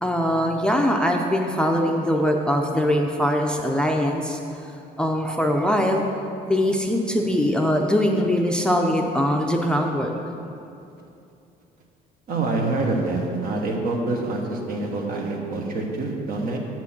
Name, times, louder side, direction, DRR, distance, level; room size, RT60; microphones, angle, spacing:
voice 1, 0.0-4.4 5.0-6.1 6.5-10.1, equal, 5° left, 2 dB, 0.5 m, -22 dB
voice 2, 12.3-16.6, right 2 dB, 60° right, 0 dB, 1.4 m, -26 dB
7.6 x 6.1 x 5.9 m, 2.7 s
cardioid pair, 110°, 17 cm